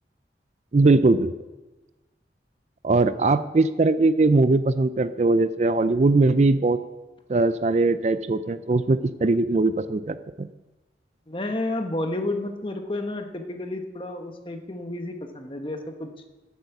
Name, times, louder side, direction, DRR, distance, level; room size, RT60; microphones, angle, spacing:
voice 1, 0.7-1.3 2.8-6.8 7.3-10.5, right 3 dB, 40° right, 13 dB, 0.4 m, -20 dB
voice 2, 11.3-16.1, left 2 dB, 30° left, 5 dB, 1.2 m, -31 dB
15.0 x 8.2 x 5.9 m, 1.1 s
head